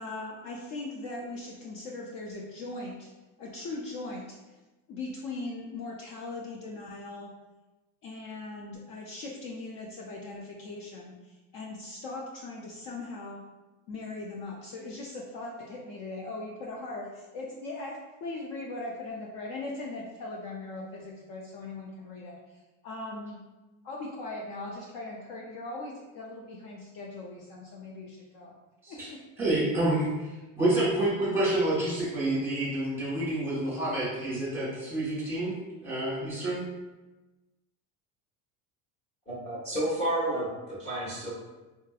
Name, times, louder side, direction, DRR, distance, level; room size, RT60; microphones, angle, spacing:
voice 1, 0.0-3.1 3.4-4.6 4.9-7.3 8.0-13.4 13.9-23.4 23.8-28.5 28.9-29.2, left 2 dB, 55° left, -2 dB, 0.5 m, -39 dB
voice 2, 29.4-30.3 30.6-35.5 35.8-36.7, right 1 dB, 5° right, -7 dB, 1.1 m, -28 dB
voice 3, 39.3-40.5 40.8-41.3, right 1 dB, 25° left, -10 dB, 1.0 m, -30 dB
3.7 x 2.5 x 2.4 m, 1.1 s
cardioid pair, 140°, 39 cm